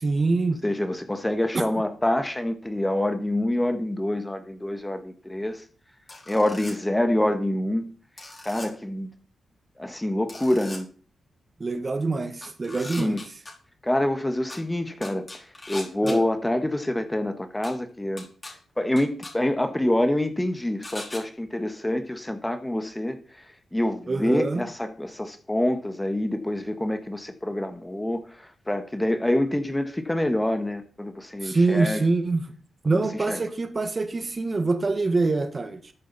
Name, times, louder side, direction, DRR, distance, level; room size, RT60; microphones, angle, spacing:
voice 1, 0.0-0.6 11.6-13.1 16.0-16.2 24.1-24.7 31.4-32.4 32.8-35.9, right 3 dB, 40° right, 1.5 m, -25 dB
voice 2, 0.6-5.6 6.3-7.9 8.4-9.1 9.8-10.9 12.7-13.2 13.8-23.2 23.7-32.0 32.9-33.4, left 1 dB, 10° left, 1.5 m, -26 dB
sound 1, 6.1-6.7 8.2-8.7 10.3-10.8 12.4-13.5 14.5-14.6 15.0-16.2 17.6-17.7 18.2-18.5 19.0-19.3 20.8-21.2, left 2 dB, 30° left, 4.2 m, -39 dB
13.5 x 8.2 x 4.2 m
cardioid pair, 65°, 0 cm